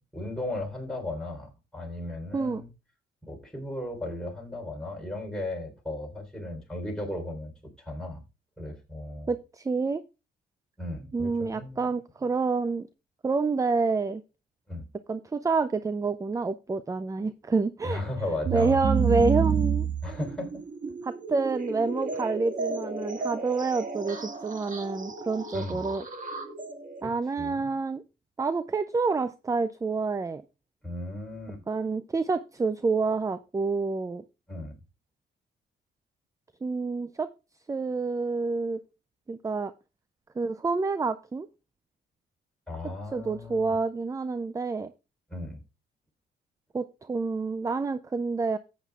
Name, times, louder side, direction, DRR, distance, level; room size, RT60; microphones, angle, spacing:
voice 1, 0.1-2.7 3.3-7.5 7.9-8.2 8.6-9.3 10.8-11.9 14.7-14.9 17.8-18.8 20.0-20.6 25.5-25.8 27.0-27.1 27.4-27.7 30.8-31.6 34.5-34.7 42.7-43.8 45.3-45.6, left 1 dB, 5° left, 0 dB, 3.8 m, -36 dB
voice 2, 9.3-10.0 11.1-12.9 13.2-14.2 15.1-18.0 18.5-19.9 21.0-26.0 27.0-28.0 28.4-30.4 31.7-34.2 36.6-37.3 37.7-38.8 39.3-39.7 40.4-41.5 43.1-44.9 46.7-48.6, right 4 dB, 15° right, 14 dB, 0.4 m, -28 dB
sound 1, 18.4-27.0, right 5 dB, 40° right, 1.7 m, -30 dB
14.0 x 8.5 x 2.4 m, 0.29 s
cardioid pair, 90°, 20 cm